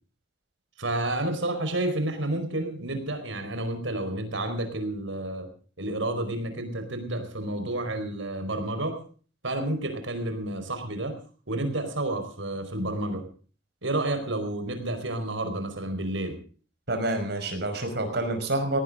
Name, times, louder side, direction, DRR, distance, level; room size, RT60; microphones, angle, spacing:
voice 1, 0.8-5.5 5.8-9.0 9.4-11.2 11.5-13.2 13.8-16.4, right 1 dB, 75° right, 8 dB, 4.9 m, -30 dB
voice 2, 16.9-18.8, right 2 dB, 55° right, 6 dB, 5.5 m, -28 dB
19.0 x 18.5 x 3.8 m, 0.41 s
head